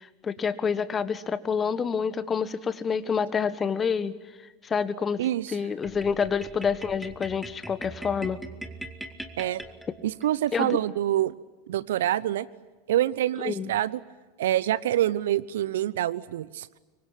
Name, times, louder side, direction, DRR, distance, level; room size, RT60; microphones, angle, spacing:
voice 1, 0.0-4.1 4.6-5.2 5.5-8.4 10.5-10.8 13.4-13.7, left 6 dB, 25° left, 14 dB, 1.6 m, -28 dB
voice 2, 5.2-5.6 9.4-9.6 10.0-11.3 11.7-12.5 12.9-14.0 14.4-16.7, right 12 dB, 65° right, 19 dB, 0.9 m, -26 dB
sound 1, 5.8-10.3, right 1 dB, 5° right, 2.2 m, -41 dB
26.0 x 24.0 x 9.1 m, 1.2 s
figure-of-eight pair, 85°, 0 cm